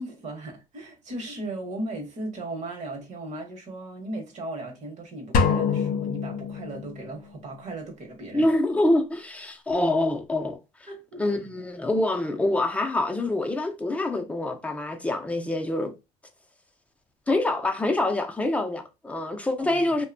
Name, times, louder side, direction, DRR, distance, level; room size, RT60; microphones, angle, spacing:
voice 1, 0.0-8.5 10.9-11.2 19.6-19.8, right 2 dB, 50° right, 1.0 m, -37 dB
sound 1, 5.3-7.1, left 6 dB, 65° left, 0.5 m, -25 dB
voice 2, 8.3-10.6 11.2-15.9 17.3-20.1, left 2 dB, 10° left, 0.6 m, -25 dB
2.7 x 2.2 x 2.5 m
cardioid pair, 100°, 15 cm